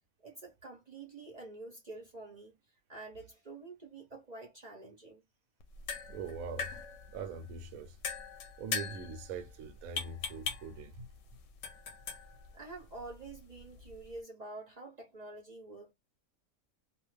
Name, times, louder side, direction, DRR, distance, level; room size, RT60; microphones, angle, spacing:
voice 1, 0.2-2.6 2.9-5.2 12.5-15.9, right 2 dB, 40° right, 0.6 m, -47 dB
sound 1, 5.6-14.2, left 6 dB, 70° left, 0.9 m, -42 dB
voice 2, 6.1-6.7 7.1-8.0 8.6-11.1, right 5 dB, 75° right, 1.0 m, -42 dB
2.5 x 2.4 x 3.1 m
omnidirectional pair, 1.5 m